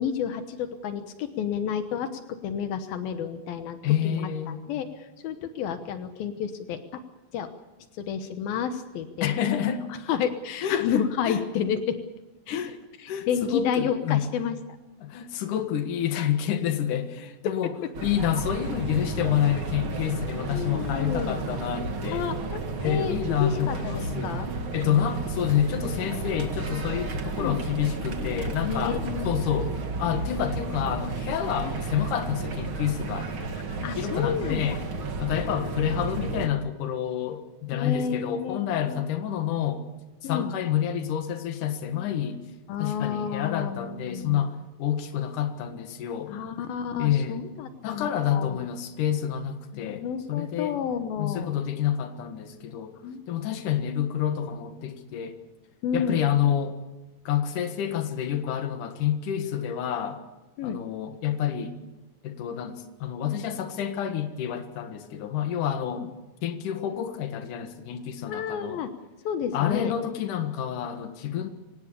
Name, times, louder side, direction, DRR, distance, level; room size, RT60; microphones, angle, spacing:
voice 1, 0.0-3.8 4.0-7.0 7.3-7.5 8.0-9.3 10.1-12.0 12.5-12.6 13.0-14.5 17.5-17.6 17.8-17.9 20.5-21.4 22.1-24.5 27.4-27.6 28.6-29.3 31.6-31.8 33.7-34.7 35.3-35.6 37.7-39.0 40.2-40.5 42.7-44.4 46.3-48.6 49.7-51.5 53.0-53.2 55.8-56.2 60.6-60.8 66.0-66.1 68.2-68.9 69.3-69.9, left 7 dB, 80° left, 8 dB, 3.0 m, -31 dB
voice 2, 3.8-4.8 9.2-9.9 10.6-11.4 12.5-12.8 13.1-14.2 15.0-17.7 18.0-22.3 22.8-24.3 24.7-29.0 29.2-33.3 33.8-34.8 35.2-39.9 40.2-42.4 42.8-46.4 47.0-47.4 47.8-50.8 51.2-52.9 53.3-55.4 55.9-56.8 57.2-60.2 60.6-61.8 62.2-66.1 66.4-68.8 69.5-71.5, left 10 dB, 65° left, 7 dB, 3.0 m, -28 dB
sound 1, 17.9-36.5, right 3 dB, 40° right, 2.2 m, -32 dB
25.0 x 19.0 x 6.9 m, 1.1 s
omnidirectional pair, 4.2 m